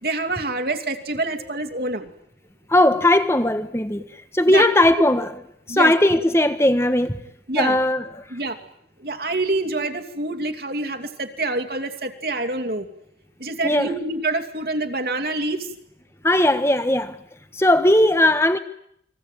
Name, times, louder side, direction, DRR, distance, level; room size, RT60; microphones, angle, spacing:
voice 1, 0.0-2.1 4.5-4.7 5.7-5.9 7.5-7.8 8.3-8.6 9.0-12.9 13.4-15.7, right 2 dB, 55° right, 2.7 m, -26 dB
voice 2, 2.7-4.0 4.3-5.3 5.7-7.2 7.6-8.0 13.6-13.9 16.2-17.2 17.5-18.6, left 1 dB, 15° left, 1.4 m, -18 dB
29.5 x 22.0 x 9.2 m
head